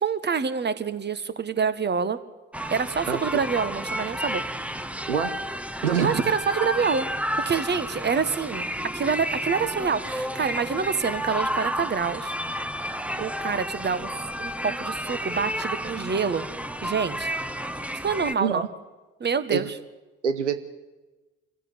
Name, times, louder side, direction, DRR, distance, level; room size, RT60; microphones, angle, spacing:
voice 1, 0.0-2.2 2.7-4.4 6.0-7.1 7.4-8.7 8.9-12.3 13.2-16.5 16.8-17.3 18.0-18.6 19.2-19.7, right 6 dB, 30° right, 13 dB, 1.6 m, -26 dB
sound 1, 2.5-18.3, equal, 5° right, 1.1 m, -31 dB
voice 2, 5.1-5.4 5.8-6.2 18.4-18.7 19.5-19.7 20.2-20.6, right 7 dB, 90° right, 11 dB, 0.8 m, -25 dB
25.5 x 15.5 x 8.1 m, 1.2 s
figure-of-eight pair, 50°, 34 cm